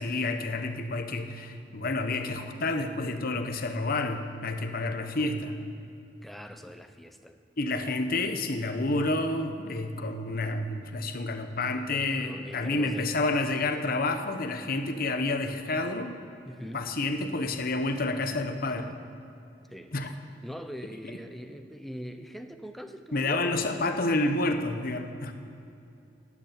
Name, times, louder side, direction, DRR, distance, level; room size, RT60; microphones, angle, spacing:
voice 1, 0.0-5.6 7.6-16.2 16.7-19.0 19.9-20.1 23.1-25.5, left 2 dB, 50° left, 7 dB, 1.0 m, -29 dB
voice 2, 5.1-5.4 6.2-7.4 12.2-13.1 16.4-16.9 19.7-19.9 20.4-23.5, equal, ahead, 7 dB, 0.7 m, -42 dB
12.5 x 8.5 x 8.8 m, 2.7 s
head